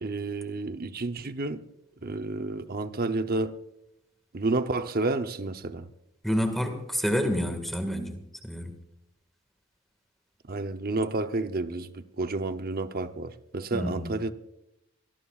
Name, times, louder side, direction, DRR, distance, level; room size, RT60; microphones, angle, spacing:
voice 1, 0.0-1.6 2.0-3.6 4.3-5.9 10.5-14.3, right 2 dB, 40° right, 0.8 m, -30 dB
voice 2, 6.2-8.8 13.7-14.1, equal, ahead, 1.9 m, -29 dB
24.0 x 19.0 x 2.5 m
head